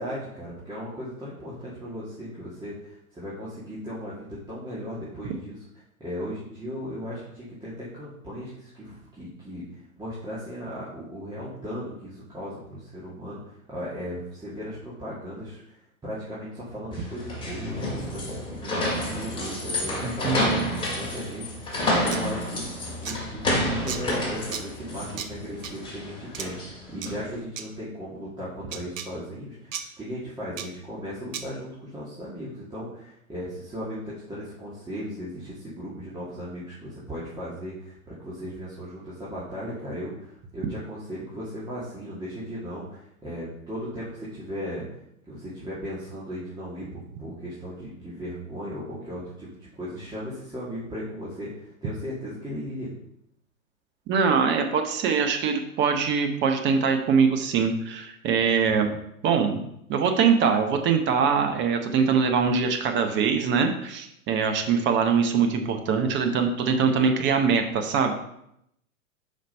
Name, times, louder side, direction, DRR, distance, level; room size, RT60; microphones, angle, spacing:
voice 1, 0.0-5.6 6.0-9.6 10.0-44.8 45.3-52.9, equal, 10° right, -9 dB, 2.1 m, -37 dB
sound 1, 16.9-27.3, left 1 dB, 10° left, 2.3 m, -29 dB
voice 2, 20.0-20.4 54.1-58.9 59.2-59.6 59.9-68.1, right 6 dB, 25° right, 5 dB, 0.9 m, -23 dB
sound 2, 22.1-22.2 23.0-23.2 23.9-24.0 24.5-24.6 25.2-25.3 25.6-25.7 26.3-26.5 27.0-27.1 27.6-27.7 28.7-29.1 29.7-29.8 30.6-30.7 31.3-31.4, right 8 dB, 65° right, 1.0 m, -34 dB
5.7 x 5.2 x 5.3 m, 0.76 s
hypercardioid pair, 115°, 43 cm